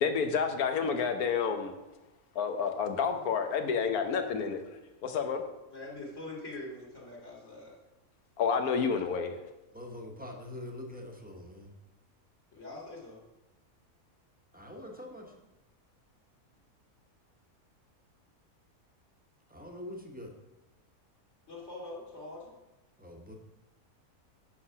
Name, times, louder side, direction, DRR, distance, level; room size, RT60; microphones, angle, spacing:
voice 1, 0.0-1.7 2.3-4.6 5.0-5.4 8.4-9.3, left 6 dB, 90° left, 7 dB, 1.4 m, -29 dB
voice 2, 5.7-7.8 12.5-13.2 21.5-22.5, left 2 dB, 55° left, -3 dB, 2.6 m, -43 dB
voice 3, 9.7-11.7 14.5-15.3 19.5-20.3 23.0-23.3, left 1 dB, 5° right, 1 dB, 1.1 m, -44 dB
8.5 x 5.8 x 5.8 m, 1.0 s
omnidirectional pair, 1.5 m